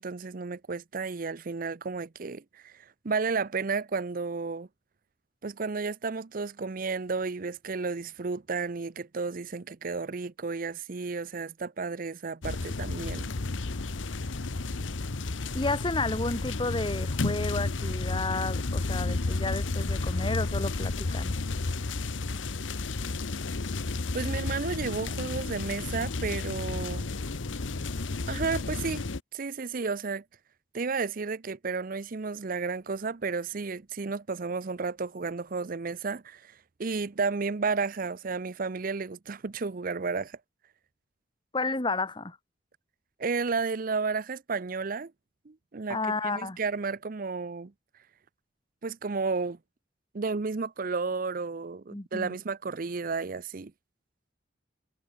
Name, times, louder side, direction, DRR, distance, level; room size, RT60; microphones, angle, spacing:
voice 1, 0.0-4.7 5.4-13.3 24.1-27.1 28.3-29.0 29.3-30.2 30.7-40.4 43.2-45.1 45.5-47.7 48.8-49.6 50.1-53.7, right 4 dB, 45° right, 0.6 m, -32 dB
sound 1, 12.4-29.2, left 3 dB, 85° left, 1.0 m, -32 dB
voice 2, 15.5-21.3 41.5-42.4 45.9-46.6 51.9-52.3, left 3 dB, 25° left, 1.4 m, -32 dB
head